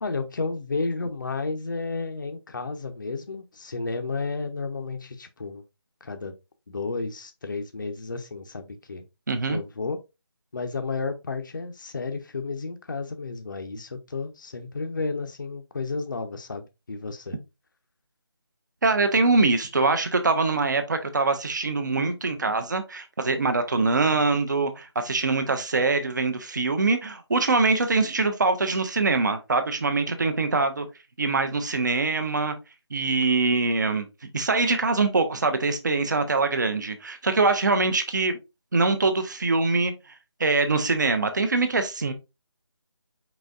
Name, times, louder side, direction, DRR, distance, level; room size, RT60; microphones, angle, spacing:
voice 1, 0.0-5.6 6.0-6.3 6.7-9.0 9.5-10.0 10.5-17.4, left 3 dB, 45° left, 0.5 m, -32 dB
voice 2, 9.3-9.6 18.8-30.9 31.2-32.5 32.9-34.1 34.3-38.4 38.7-39.9 40.4-42.1, right 3 dB, 45° right, 0.6 m, -23 dB
4.5 x 4.0 x 2.3 m
figure-of-eight pair, 175°, 14 cm